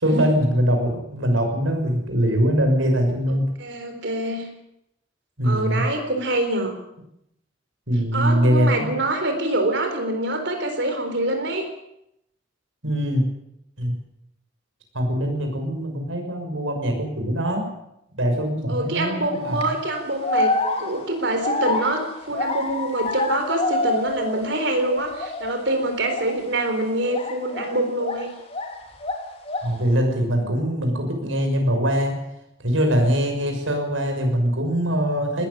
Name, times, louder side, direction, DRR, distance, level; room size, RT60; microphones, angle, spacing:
voice 1, 0.0-3.4 5.4-5.8 7.9-8.9 12.8-13.2 13.8-13.9 14.9-17.7 18.1-19.6 29.6-32.2 32.6-35.5, equal, 80° right, 4 dB, 6.5 m, -22 dB
voice 2, 3.3-4.5 5.4-6.8 8.1-11.7 18.7-28.3, right 1 dB, 60° right, 5 dB, 4.0 m, -25 dB
sound 1, 19.3-19.6 20.2-24.6 24.9-25.6 26.1-26.3 27.1-28.7 29.0-29.8, left 2 dB, 30° left, 3.0 m, -27 dB
20.5 x 14.5 x 9.9 m, 0.81 s
head